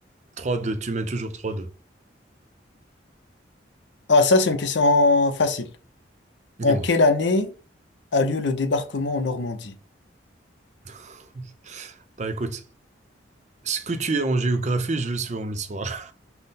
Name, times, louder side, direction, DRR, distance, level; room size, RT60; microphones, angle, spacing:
voice 1, 0.4-1.7 6.6-6.9 10.9-12.6 13.6-16.1, right 3 dB, 40° right, 0.5 m, -28 dB
voice 2, 4.1-5.7 6.6-7.5 8.1-9.7, left 3 dB, 70° left, 0.6 m, -20 dB
5.5 x 2.1 x 4.0 m
head